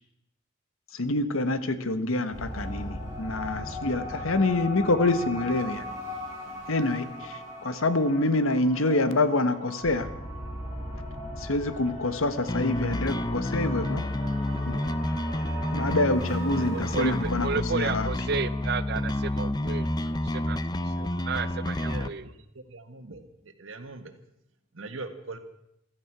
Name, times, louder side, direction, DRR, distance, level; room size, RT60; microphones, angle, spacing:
voice 1, 0.9-5.9 6.7-10.1 11.4-14.0 14.7-14.8 15.7-18.1, left 2 dB, 80° left, 12 dB, 1.2 m, -26 dB
sound 1, 2.3-17.5, left 1 dB, 35° left, 6.2 m, -38 dB
sound 2, 12.5-22.1, left 1 dB, 20° left, 0.6 m, -29 dB
voice 2, 16.7-17.1 17.4-19.8 20.3-20.6 21.0-22.2, right 5 dB, 50° right, 14 dB, 0.5 m, -32 dB
voice 3, 21.8-22.4 22.7-23.3 23.6-24.1 24.7-25.4, right 3 dB, 70° right, 8 dB, 1.6 m, -41 dB
16.5 x 13.5 x 6.0 m, 0.80 s
head